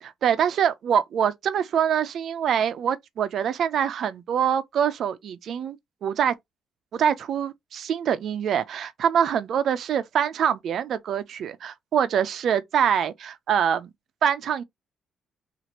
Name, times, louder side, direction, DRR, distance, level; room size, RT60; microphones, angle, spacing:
voice 1, 0.0-5.8 6.0-6.4 6.9-13.9 14.2-14.6, right 8 dB, 65° right, 0.4 m, -24 dB
2.8 x 2.5 x 2.9 m
cardioid pair, 90°, 0 cm